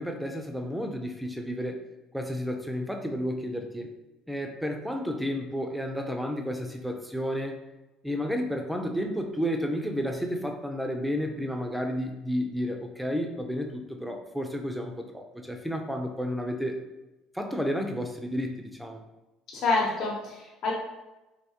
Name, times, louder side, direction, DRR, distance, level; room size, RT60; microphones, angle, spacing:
voice 1, 0.0-1.8 2.1-3.9 4.3-7.6 8.0-16.8 17.3-19.0, equal, ahead, 3 dB, 0.4 m, -31 dB
voice 2, 19.5-20.7, left 3 dB, 55° left, -4 dB, 0.8 m, -27 dB
3.5 x 2.7 x 2.8 m, 1.0 s
cardioid pair, 130°, 0 cm